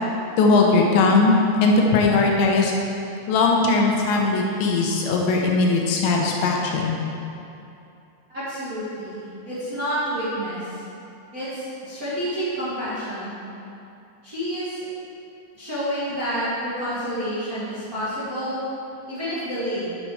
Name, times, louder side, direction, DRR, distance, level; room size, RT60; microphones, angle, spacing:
voice 1, 0.4-2.7 3.3-7.0, left 3 dB, 85° left, 0 dB, 3.4 m, -19 dB
voice 2, 8.3-10.8 11.3-13.3 14.2-14.8 15.5-18.6 19.1-20.0, equal, 35° right, -11 dB, 1.4 m, -29 dB
9.2 x 8.6 x 5.0 m, 2.7 s
omnidirectional pair, 5.0 m